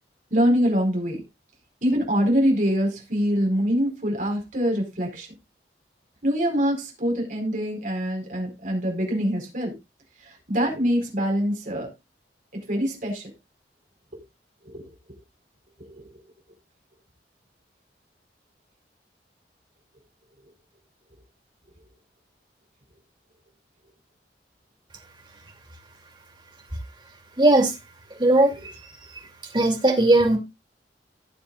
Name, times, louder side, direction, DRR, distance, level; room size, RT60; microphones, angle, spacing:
voice 1, 0.3-1.2 1.8-5.3 6.2-9.7 10.2-11.9 12.5-13.3 14.6-14.9 15.9-16.0, equal, 45° right, 1 dB, 4.6 m, -24 dB
voice 2, 27.4-27.7 28.2-28.5 29.5-30.4, right 2 dB, 25° right, 2 dB, 2.7 m, -17 dB
18.0 x 7.2 x 2.5 m, 0.23 s
head